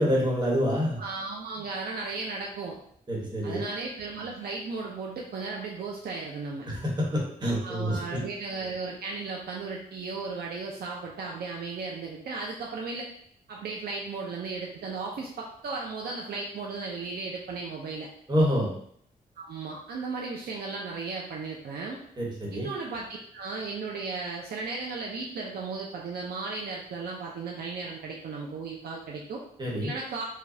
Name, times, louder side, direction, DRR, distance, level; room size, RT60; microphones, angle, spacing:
voice 1, 0.0-1.0 3.1-3.6 6.7-8.2 18.3-18.7 22.2-22.7 29.6-29.9, equal, 25° right, -3 dB, 1.2 m, -27 dB
voice 2, 1.0-2.8 3.4-6.7 7.6-13.1 13.5-18.1 19.4-22.0 22.5-23.1 23.3-29.4 29.8-30.2, right 4 dB, 80° right, -2 dB, 0.5 m, -35 dB
4.9 x 2.3 x 2.7 m, 0.67 s
wide cardioid pair, 110°, 16 cm